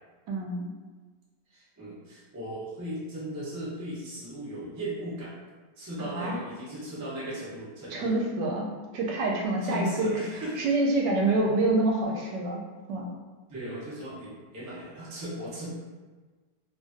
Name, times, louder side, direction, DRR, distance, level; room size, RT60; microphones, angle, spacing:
voice 1, 0.3-0.7 6.0-6.4 7.9-8.7 8.9-10.1 10.6-12.6 12.9-13.0, right 2 dB, 85° right, -1 dB, 1.2 m, -26 dB
voice 2, 1.5-5.3 5.8-8.2 9.6-10.6 13.5-15.7, equal, 25° right, -8 dB, 0.3 m, -37 dB
3.1 x 2.4 x 2.5 m, 1.3 s
omnidirectional pair, 1.9 m